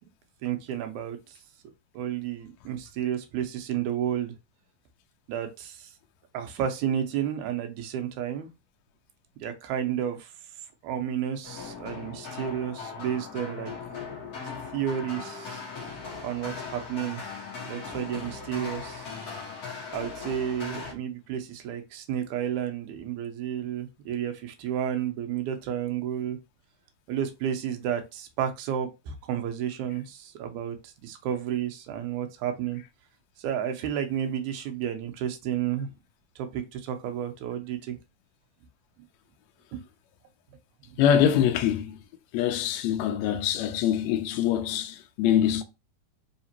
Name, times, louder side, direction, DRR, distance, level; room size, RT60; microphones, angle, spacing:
voice 1, 0.4-1.2 1.9-4.4 5.3-5.9 6.3-8.5 9.4-10.3 10.8-13.7 14.7-15.6 16.2-17.2 17.7-19.2 19.9-26.4 27.1-30.8 31.0-32.8 33.4-35.9 36.4-38.0 39.7-39.8, right 9 dB, 80° right, 2.1 m, -31 dB
sound 1, 11.4-20.9, left 5 dB, 55° left, 1.0 m, -39 dB
voice 2, 41.0-42.0 42.3-45.6, left 10 dB, 80° left, 1.6 m, -24 dB
5.0 x 2.9 x 2.8 m
omnidirectional pair, 3.7 m